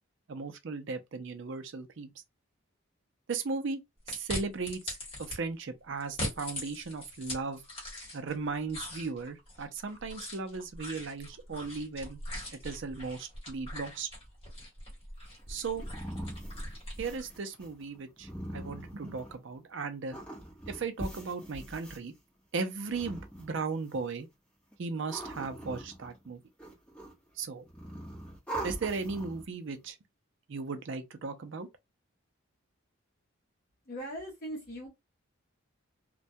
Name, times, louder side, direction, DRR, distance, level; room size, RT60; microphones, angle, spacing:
voice 1, 0.3-2.1 3.3-3.8 4.1-7.6 8.1-12.2 12.5-14.1 15.5-15.8 17.0-20.2 20.7-22.1 22.5-24.3 24.8-26.4 27.4-27.6 28.6-30.0 30.5-31.7, right 4 dB, 55° right, 0.5 m, -36 dB
sound 1, 4.1-5.4 6.0-8.4 8.7-17.3, left 1 dB, 25° left, 1.2 m, -41 dB
sound 2, 15.2-19.6 20.1-22.0 22.7-23.9 24.7-26.3 26.6-27.3 27.6-29.5, right 1 dB, 5° left, 0.8 m, -42 dB
voice 2, 33.9-34.9, equal, 45° left, 0.7 m, -39 dB
2.2 x 2.1 x 2.6 m
head